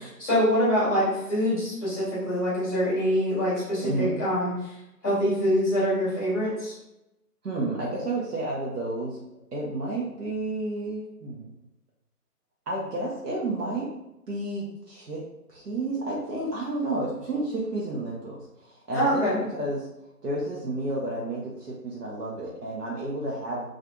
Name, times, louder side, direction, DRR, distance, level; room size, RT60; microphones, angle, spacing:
voice 1, 0.2-4.7 5.0-6.7 18.9-19.4, equal, 15° left, -9 dB, 1.0 m, -25 dB
voice 2, 3.8-4.2 7.4-9.2 9.5-11.5 12.7-13.9 14.3-15.2 15.5-19.9 20.2-23.6, right 2 dB, 75° right, -5 dB, 0.7 m, -31 dB
2.7 x 2.4 x 2.2 m, 0.88 s
figure-of-eight pair, 150°, 47 cm